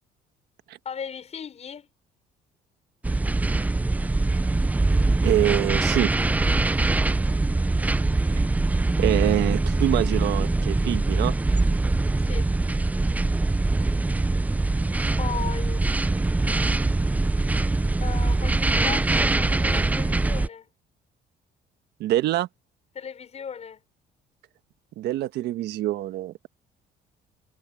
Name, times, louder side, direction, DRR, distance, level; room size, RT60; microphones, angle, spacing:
voice 1, 0.8-1.9 6.9-7.7 12.3-12.5 15.2-15.9 18.0-20.7 22.9-23.8, left 7 dB, 40° left, 6.0 m, -37 dB
sound 1, 3.0-20.5, right 2 dB, 10° right, 0.4 m, -23 dB
voice 2, 5.2-6.1 9.0-11.3 22.0-22.5 25.0-26.5, right 14 dB, 80° right, 1.3 m, -25 dB
cardioid pair, 110°, 17 cm